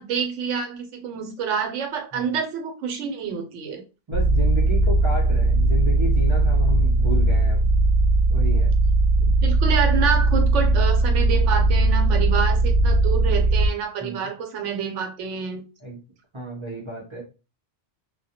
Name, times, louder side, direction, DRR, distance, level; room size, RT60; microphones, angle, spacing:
voice 1, 0.0-3.8 7.2-7.3 9.2-15.6, right 6 dB, 80° right, 5 dB, 0.9 m, -28 dB
sound 1, 4.1-13.7, right 2 dB, 80° left, 0.9 m, -19 dB
voice 2, 4.1-7.7 8.3-8.7 14.0-14.3 15.8-16.0 16.3-17.2, equal, 35° right, -3 dB, 0.5 m, -32 dB
2.2 x 2.0 x 2.7 m, 0.30 s
omnidirectional pair, 1.2 m